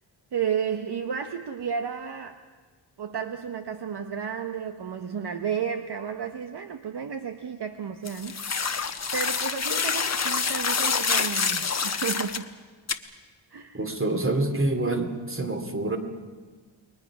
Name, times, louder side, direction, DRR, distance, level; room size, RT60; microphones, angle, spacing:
voice 1, 0.3-2.4 3.0-8.4 9.1-12.5 13.5-13.8, right 7 dB, 55° right, 7 dB, 1.0 m, -32 dB
sound 1, 8.1-12.4 12.9-13.0, left 5 dB, 35° left, 1.1 m, -27 dB
voice 2, 13.7-16.0, right 2 dB, 25° right, 5 dB, 2.4 m, -26 dB
29.0 x 22.5 x 6.0 m, 1.4 s
wide cardioid pair, 140°, 48 cm